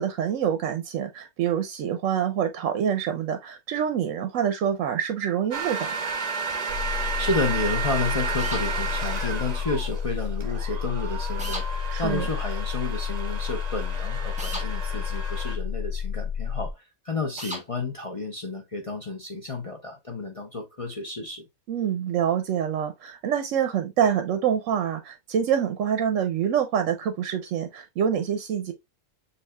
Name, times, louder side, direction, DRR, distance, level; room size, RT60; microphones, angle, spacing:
voice 1, 0.0-6.2 11.9-12.3 21.7-28.7, right 8 dB, 70° right, 0.9 m, -26 dB
sound 1, 5.5-15.6, right 5 dB, 45° right, 0.6 m, -33 dB
sound 2, 6.7-16.7, left 7 dB, 70° left, 1.3 m, -30 dB
voice 2, 7.2-11.6 12.0-21.5, left 3 dB, 45° left, 0.4 m, -31 dB
sound 3, 8.4-8.6 11.4-11.7 14.4-14.7 17.4-17.6, right 1 dB, 5° right, 1.0 m, -34 dB
6.6 x 2.7 x 2.2 m
omnidirectional pair, 1.5 m